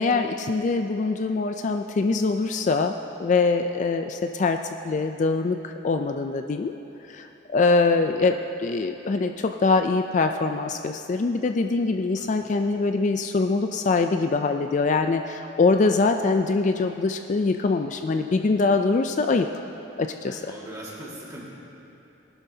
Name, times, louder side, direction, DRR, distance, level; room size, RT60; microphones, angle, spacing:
voice 1, 0.0-6.7 7.1-19.5 20.0-20.4, left 3 dB, 40° left, 6 dB, 0.3 m, -23 dB
voice 2, 20.2-21.5, right 1 dB, 15° right, -4 dB, 1.9 m, -40 dB
19.5 x 12.0 x 2.8 m, 3.0 s
head